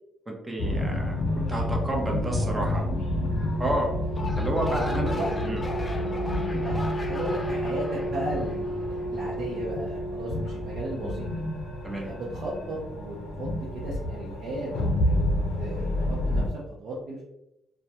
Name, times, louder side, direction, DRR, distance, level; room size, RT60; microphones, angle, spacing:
voice 1, 0.3-1.2 1.5-2.8 3.6-4.0 4.4-5.1 5.4-5.6 6.3-6.4 11.8-12.1, right 1 dB, 15° right, 0 dB, 0.6 m, -30 dB
sound 1, 0.6-16.5, left 1 dB, 85° left, 0.5 m, -29 dB
voice 2, 2.0-2.9 3.5-3.6 4.7-5.4 6.5-11.3 11.9-13.5 13.7-15.2 15.6-16.5 16.8-17.2, right 1 dB, 70° right, -6 dB, 0.6 m, -35 dB
sound 2, 4.0-9.4, left 2 dB, 25° left, 0.4 m, -38 dB
2.2 x 2.1 x 2.8 m, 0.85 s
cardioid pair, 90°, 0 cm